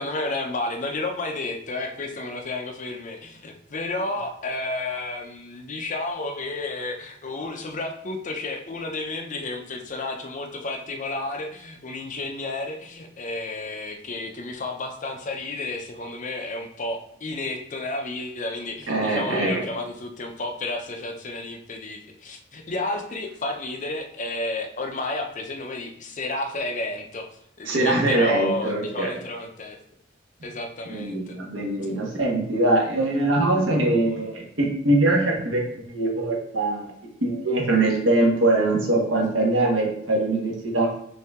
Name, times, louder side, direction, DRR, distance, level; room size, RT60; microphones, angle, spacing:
voice 1, 0.0-27.3 27.6-29.8 30.4-31.4, left 2 dB, 40° left, 4 dB, 0.6 m, -31 dB
voice 2, 18.9-19.6 27.7-29.1 30.9-36.9 37.2-40.9, right 2 dB, 70° right, -2 dB, 1.3 m, -22 dB
5.4 x 2.7 x 3.6 m, 0.70 s
head